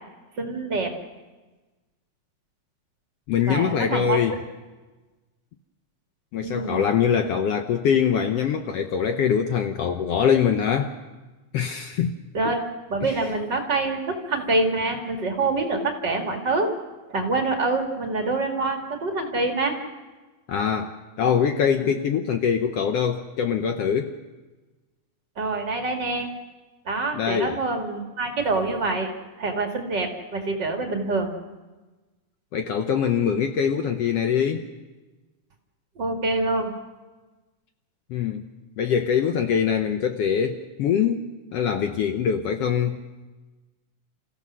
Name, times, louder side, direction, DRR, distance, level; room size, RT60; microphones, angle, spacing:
voice 1, 0.4-0.9 3.5-4.2 6.4-6.9 12.3-12.6 12.9-16.7 17.1-19.8 25.4-26.3 26.9-29.1 29.4-31.3 36.0-36.7, right 3 dB, 40° right, 2 dB, 2.4 m, -26 dB
voice 2, 3.3-4.4 6.3-10.9 11.5-12.2 13.0-13.2 20.5-20.9 21.2-24.2 27.1-27.6 32.5-34.7 38.1-38.4 38.8-41.3 41.5-43.0, left 7 dB, 70° left, 6 dB, 1.6 m, -23 dB
29.5 x 15.5 x 6.2 m, 1.2 s
omnidirectional pair, 3.4 m